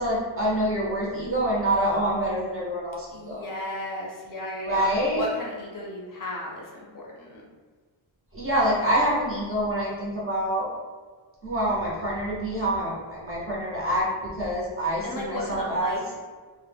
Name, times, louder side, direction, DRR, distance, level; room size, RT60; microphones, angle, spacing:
voice 1, 0.0-3.4 4.7-5.2 8.3-10.7 11.4-16.0, right 1 dB, 30° right, -5 dB, 0.5 m, -26 dB
voice 2, 3.1-7.4 15.0-16.2, left 1 dB, 45° left, -3 dB, 0.5 m, -34 dB
2.1 x 2.1 x 3.2 m, 1.5 s
wide cardioid pair, 170°, 49 cm